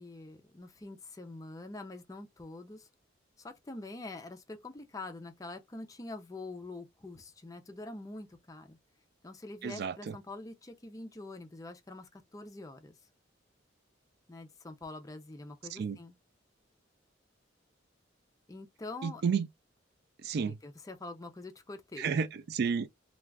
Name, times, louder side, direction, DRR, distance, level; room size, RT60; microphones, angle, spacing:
voice 1, 0.0-2.9 3.4-8.8 9.2-12.9 14.3-16.1 18.5-19.2 20.5-22.2, left 2 dB, 20° left, 0.4 m, -45 dB
voice 2, 9.6-10.1 15.7-16.0 19.0-19.5 20.2-20.6 22.0-22.9, right 6 dB, 55° right, 0.3 m, -31 dB
2.3 x 2.3 x 3.2 m
head